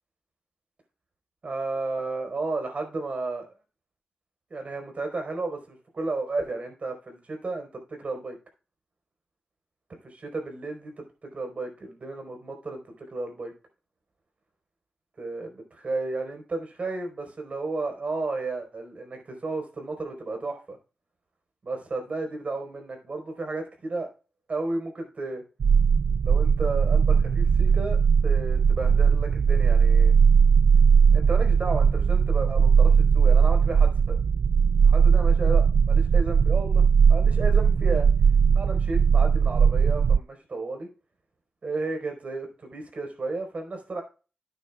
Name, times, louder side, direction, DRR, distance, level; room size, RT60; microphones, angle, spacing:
voice 1, 1.4-3.5 4.5-8.4 10.0-11.0 11.3-13.5 15.2-20.8 21.6-24.1 24.5-25.4 26.2-28.0 28.2-30.1 31.1-34.2 34.8-38.1 38.5-40.9 41.6-44.0, right 3 dB, 55° right, 4 dB, 4.3 m, -33 dB
sound 1, 25.6-40.2, right 6 dB, 80° right, 0.4 m, -19 dB
11.5 x 9.3 x 2.3 m, 0.34 s
cardioid pair, 70°, 3 cm